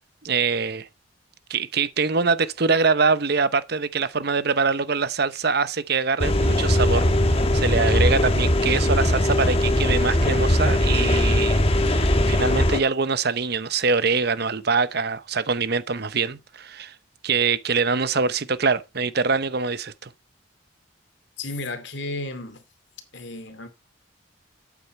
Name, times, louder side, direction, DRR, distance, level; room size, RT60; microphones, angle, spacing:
voice 1, 0.2-0.9 1.5-11.6 11.9-16.9 17.2-20.1, right 4 dB, 55° right, 0.8 m, -24 dB
sound 1, 6.2-12.8, left 1 dB, 30° left, 1.3 m, -20 dB
voice 2, 21.4-22.6 23.1-23.7, left 2 dB, 60° left, 2.4 m, -33 dB
12.5 x 8.5 x 4.3 m
head